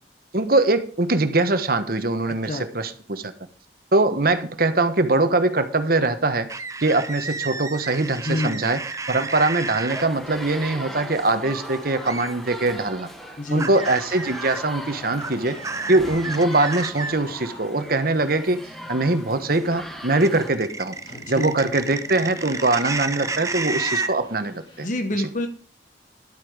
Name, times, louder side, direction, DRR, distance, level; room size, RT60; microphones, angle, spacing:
voice 1, 0.3-3.3 3.9-6.5 6.8-8.8 9.1-13.1 13.5-15.6 15.9-18.6 18.9-20.9 21.3-24.9, right 2 dB, 55° right, 9 dB, 1.3 m, -22 dB
voice 2, 2.3-2.6 8.3-8.6 13.4-13.7 21.3-21.5 24.8-25.5, left 1 dB, 45° left, 7 dB, 1.1 m, -27 dB
sound 1, 6.5-10.1 12.1-12.3 13.6-14.6 15.2-17.1 20.2-24.1, right 3 dB, 20° right, 0.7 m, -31 dB
Fast Car Drive, 7.4-24.9, left 1 dB, 30° left, 3.3 m, -46 dB
sound 2, 9.9-20.5, equal, ahead, 1.5 m, -39 dB
11.5 x 8.5 x 5.0 m, 0.43 s
head